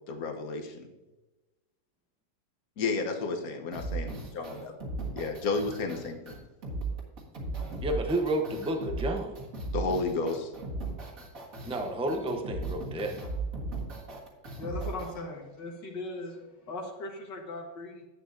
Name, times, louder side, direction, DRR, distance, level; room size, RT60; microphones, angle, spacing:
voice 1, 0.1-0.9 2.8-4.7 5.1-6.4 9.7-10.5, left 3 dB, 60° left, 4 dB, 1.5 m, -32 dB
sound 1, 3.7-15.1, right 3 dB, 50° right, 2.1 m, -36 dB
voice 2, 7.8-9.3 11.6-13.1, right 1 dB, 10° right, 4 dB, 0.4 m, -30 dB
voice 3, 14.6-18.0, left 2 dB, 75° left, 0 dB, 2.2 m, -39 dB
11.5 x 8.4 x 2.7 m, 1.1 s
omnidirectional pair, 1.9 m